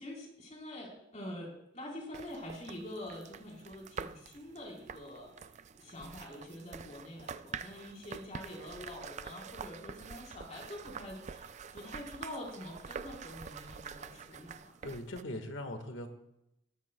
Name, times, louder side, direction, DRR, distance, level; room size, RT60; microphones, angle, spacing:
voice 1, 0.0-5.3 5.7-14.7, left 1 dB, 40° left, -2 dB, 4.1 m, -46 dB
sound 1, 2.1-15.2, right 6 dB, 40° right, 0.4 m, -47 dB
voice 2, 14.8-16.2, left 1 dB, 85° left, 6 dB, 1.6 m, -41 dB
19.5 x 13.0 x 2.3 m, 0.82 s
head